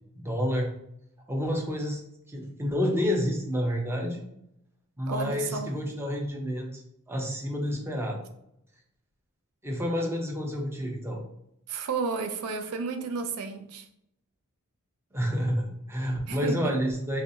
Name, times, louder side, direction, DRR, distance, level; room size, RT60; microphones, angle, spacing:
voice 1, 0.2-0.7 1.3-2.0 2.3-4.2 5.0-6.8 7.1-8.2 9.6-11.2 15.1-17.2, equal, 10° right, 0.6 m, -29 dB
voice 2, 5.1-5.7 11.7-13.9 16.3-16.8, right 4 dB, 75° right, 0.4 m, -32 dB
3.1 x 2.7 x 2.7 m
head